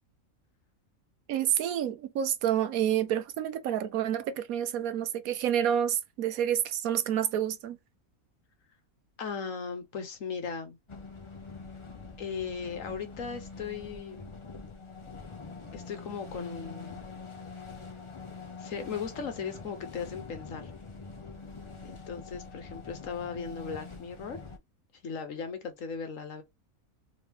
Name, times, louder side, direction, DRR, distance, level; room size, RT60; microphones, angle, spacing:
voice 1, 1.3-7.8, right 10 dB, 75° right, 1.1 m, -28 dB
voice 2, 9.2-10.8 12.2-14.4 15.7-17.0 18.6-20.7 21.9-24.4 25.0-26.4, left 6 dB, 60° left, 1.3 m, -37 dB
sound 1, 10.9-24.6, left 4 dB, 30° left, 0.6 m, -45 dB
3.5 x 3.5 x 2.9 m
omnidirectional pair, 1.6 m